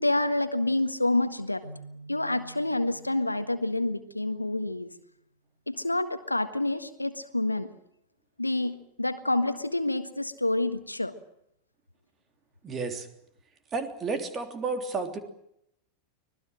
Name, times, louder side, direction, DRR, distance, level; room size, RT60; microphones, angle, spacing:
voice 1, 0.0-1.6 2.1-4.9 5.7-7.7 8.4-11.1, left 2 dB, 85° left, 10 dB, 1.6 m, -28 dB
sound 1, 1.6-5.1, right 2 dB, 85° right, 4.2 m, -49 dB
voice 2, 12.6-13.1 13.7-15.2, right 4 dB, 25° right, 7 dB, 3.3 m, -31 dB
25.0 x 19.0 x 7.8 m, 0.78 s
figure-of-eight pair, 90°, 0 cm